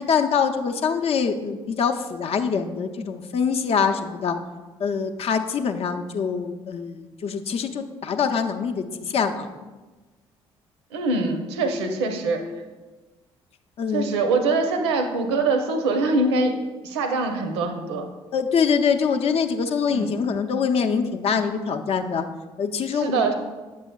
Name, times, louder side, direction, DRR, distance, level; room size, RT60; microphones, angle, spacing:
voice 1, 0.0-4.4 4.8-9.5 13.8-14.1 18.3-22.3 22.6-23.3, left 6 dB, 45° left, 7 dB, 0.6 m, -24 dB
voice 2, 10.9-12.4 13.9-16.6 16.8-18.1 19.9-20.1 22.9-23.3, right 3 dB, 75° right, 5 dB, 0.7 m, -23 dB
8.3 x 6.9 x 2.3 m, 1.2 s
figure-of-eight pair, 45°, 14 cm